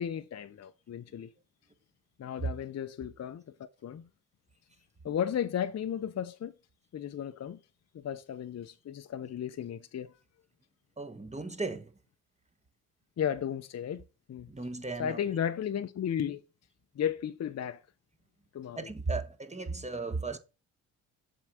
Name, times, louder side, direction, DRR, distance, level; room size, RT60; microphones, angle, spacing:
voice 1, 0.0-1.3 2.2-3.4 3.8-4.1 5.0-6.5 6.9-7.6 7.9-10.1 13.2-14.0 14.3-14.5 15.0-16.4 17.0-17.8 18.5-18.8, left 9 dB, 40° left, 0.7 m, -34 dB
voice 2, 11.0-11.9 14.5-15.2 18.8-20.4, right 3 dB, 15° right, 1.3 m, -36 dB
7.4 x 3.9 x 6.2 m
hypercardioid pair, 50°, 40 cm